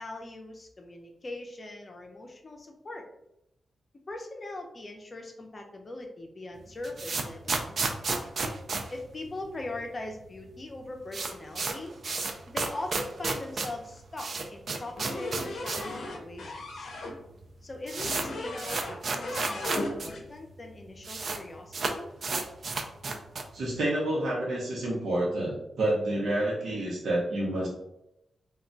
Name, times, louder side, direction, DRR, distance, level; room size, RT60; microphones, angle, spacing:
voice 1, 0.0-3.1 4.1-8.0 8.9-11.9 12.5-16.9 17.6-22.1, left 2 dB, 30° left, 3 dB, 0.5 m, -41 dB
sound 1, 6.6-9.8 10.1-10.2 10.4-10.5 10.8-16.0 16.3-16.4 17.1-17.2 17.4-20.1 20.4-20.5 20.7-21.4 21.7-23.6, right 3 dB, 50° right, 0.3 m, -32 dB
sound 2, 15.0-17.1 18.0-19.0 19.2-20.2, left 2 dB, 85° left, 0.6 m, -36 dB
voice 2, 23.5-27.7, right 1 dB, 75° right, -5 dB, 0.8 m, -28 dB
2.3 x 2.2 x 3.8 m, 0.84 s
wide cardioid pair, 120°, 0 cm